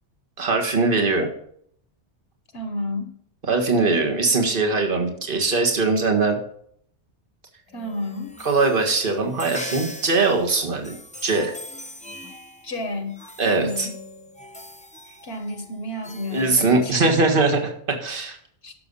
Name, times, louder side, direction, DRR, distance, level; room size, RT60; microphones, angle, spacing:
voice 1, 0.4-1.3 3.5-6.4 8.4-11.0 11.2-11.6 13.4-13.9 16.3-18.4, right 3 dB, 50° right, 3 dB, 1.8 m, -21 dB
voice 2, 2.5-3.1 7.7-8.4 12.2-12.3 12.6-13.9 15.2-17.1 18.6-18.7, left 1 dB, 60° left, 7 dB, 1.4 m, -31 dB
sound 1, 7.7-17.2, left 1 dB, 10° left, 0.5 m, -41 dB
11.5 x 6.8 x 5.5 m, 0.65 s
omnidirectional pair, 1.2 m